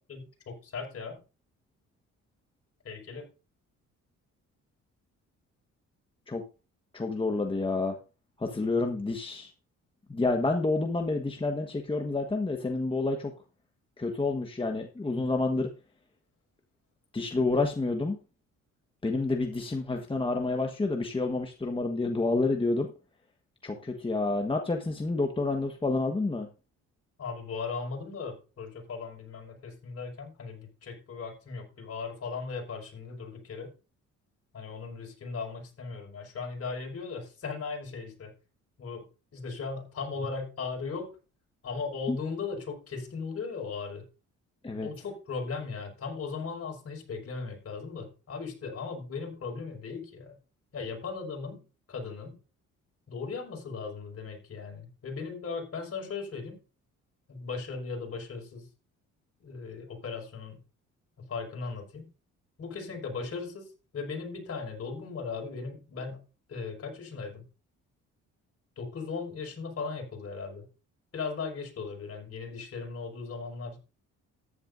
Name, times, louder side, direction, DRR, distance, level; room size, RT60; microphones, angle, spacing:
voice 1, 0.1-1.2 2.8-3.2 27.2-33.7 34.5-38.3 38.8-41.1 41.6-44.0 44.8-50.4 50.7-51.6 51.9-52.4 53.1-56.6 57.3-58.7 59.4-60.6 61.2-62.1 62.6-66.2 66.5-67.4 68.8-70.7 71.1-73.8, left 4 dB, 50° left, 1 dB, 5.6 m, -37 dB
voice 2, 6.9-7.9 8.4-9.5 10.1-13.3 14.0-15.7 17.1-18.2 19.0-22.9 23.6-26.5 42.1-42.2 44.6-44.9, left 3 dB, 15° left, 3 dB, 1.4 m, -29 dB
14.0 x 10.5 x 2.6 m, 0.33 s
cardioid pair, 90°, 30 cm